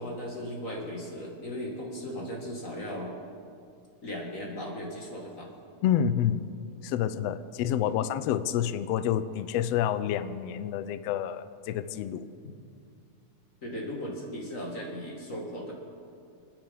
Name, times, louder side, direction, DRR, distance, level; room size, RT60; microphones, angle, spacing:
voice 1, 0.0-3.2 4.0-5.5 7.8-8.0 13.6-15.7, equal, 30° left, -1 dB, 2.0 m, -37 dB
voice 2, 5.8-6.4 6.8-12.3, left 10 dB, 80° left, 13 dB, 1.5 m, -28 dB
26.5 x 9.0 x 5.4 m, 2.4 s
omnidirectional pair, 3.5 m